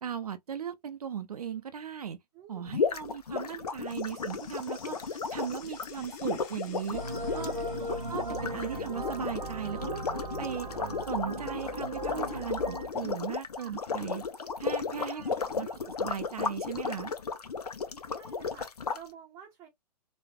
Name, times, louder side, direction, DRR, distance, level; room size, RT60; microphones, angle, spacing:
voice 1, 0.0-2.2 2.5-7.1 7.3-7.5 8.1-10.7 11.1-14.3 14.6-17.1, right 8 dB, 65° right, 0.4 m, -37 dB
voice 2, 2.3-2.8 7.0-8.0 13.6-13.8 15.0-15.7 17.4-17.8 18.1-19.7, right 8 dB, 15° right, 0.6 m, -52 dB
sound 1, 2.7-19.0, left 5 dB, 65° left, 0.7 m, -34 dB
sound 2, 3.8-9.1, left 7 dB, 25° left, 0.6 m, -54 dB
sound 3, 6.9-12.9, right 1 dB, 85° right, 1.0 m, -38 dB
4.0 x 2.2 x 2.8 m
figure-of-eight pair, 120°, 21 cm